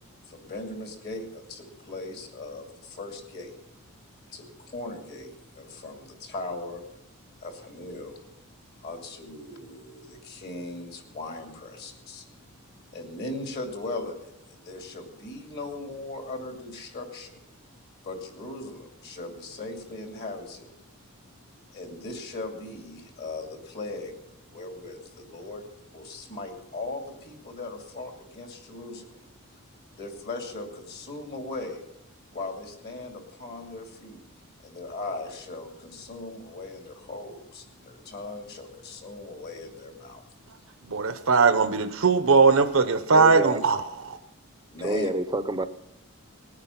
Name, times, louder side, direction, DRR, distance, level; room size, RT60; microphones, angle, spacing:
voice 1, 0.3-3.5 4.3-6.8 7.4-8.2 8.8-12.2 12.9-17.4 18.0-20.7 21.7-25.7 25.9-29.1 30.0-31.8 32.3-34.2 34.6-40.2 44.7-45.1, left 2 dB, 45° left, 3 dB, 2.6 m, -38 dB
voice 2, 40.9-43.8 44.1-44.2, right 4 dB, 65° right, 9 dB, 0.7 m, -20 dB
voice 3, 42.9-43.6 44.8-45.7, right 2 dB, 20° right, 12 dB, 0.6 m, -28 dB
19.5 x 9.7 x 5.8 m, 0.85 s
head